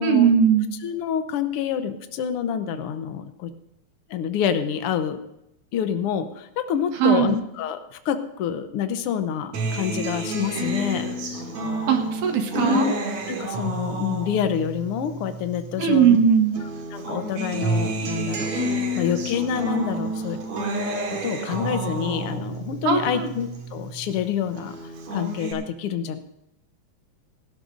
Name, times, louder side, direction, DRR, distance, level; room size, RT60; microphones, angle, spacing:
voice 1, 0.0-0.7 7.0-7.4 11.9-12.9 15.8-16.6 22.8-23.3, right 7 dB, 80° right, 4 dB, 3.0 m, -19 dB
voice 2, 0.8-3.5 4.1-5.2 5.7-7.8 8.0-11.0 12.5-12.9 13.3-16.2 16.9-18.5 19.0-20.4 21.1-24.7 25.1-26.2, left 8 dB, 70° left, 8 dB, 1.5 m, -27 dB
Acoustic guitar, 9.5-16.2 16.6-24.2 24.6-25.5, right 2 dB, 65° right, 2.9 m, -30 dB
17.5 x 16.5 x 2.6 m, 0.84 s
omnidirectional pair, 3.5 m